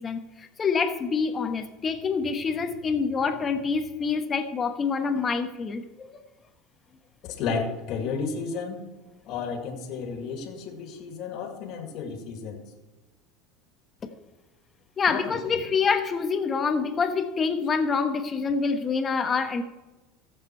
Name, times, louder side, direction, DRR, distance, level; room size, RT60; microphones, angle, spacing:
voice 1, 0.0-6.2 15.0-19.6, left 5 dB, 30° left, 8 dB, 1.3 m, -26 dB
voice 2, 7.2-8.8 9.3-12.6 15.1-15.6, left 5 dB, 60° left, 4 dB, 2.2 m, -32 dB
16.0 x 7.5 x 4.5 m, 1.1 s
supercardioid pair, 110°, 0 cm